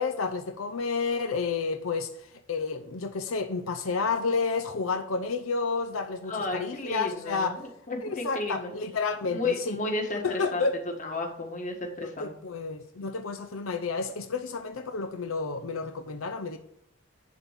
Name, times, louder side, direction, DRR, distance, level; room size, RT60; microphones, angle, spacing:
voice 1, 0.0-7.6 8.0-9.8 10.2-10.7 12.0-16.6, left 4 dB, 90° left, 0.7 m, -30 dB
voice 2, 6.3-8.7 9.3-10.7 11.0-12.3, left 2 dB, 40° left, 1.7 m, -33 dB
10.5 x 3.8 x 7.3 m
head